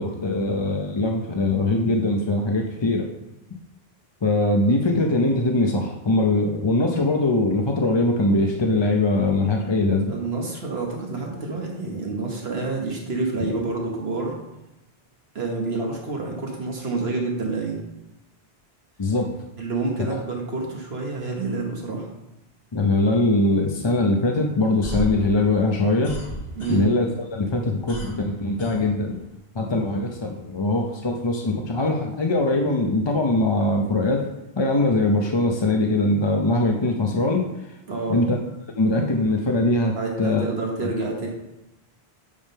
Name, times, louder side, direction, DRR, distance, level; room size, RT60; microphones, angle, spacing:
voice 1, 0.0-3.1 4.2-10.1 19.0-19.3 22.7-26.2 26.7-29.2 29.5-34.2 34.6-37.7 38.1-38.4 38.8-40.4, left 2 dB, 30° left, 1 dB, 0.6 m, -22 dB
voice 2, 10.1-14.3 15.3-17.8 19.6-22.1 26.6-26.9 37.9-38.2 39.9-41.3, right 3 dB, 75° right, -1 dB, 1.5 m, -28 dB
sound 1, 24.6-27.2 27.5-29.4, equal, 70° left, 2.0 m, -34 dB
8.5 x 3.6 x 5.5 m, 0.96 s
omnidirectional pair, 1.1 m